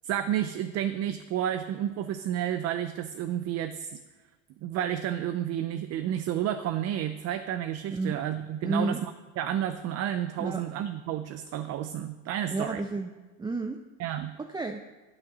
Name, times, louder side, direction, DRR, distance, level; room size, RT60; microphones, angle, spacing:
voice 1, 0.0-4.0 4.6-9.1 9.4-12.8 14.0-14.3, right 11 dB, 60° right, 10 dB, 0.6 m, -31 dB
voice 2, 8.6-9.0 10.4-10.6 12.5-13.1 13.4-13.8 14.4-14.8, right 2 dB, 15° right, 6 dB, 0.6 m, -31 dB
8.8 x 6.5 x 6.0 m, 1.2 s
supercardioid pair, 95°, 29 cm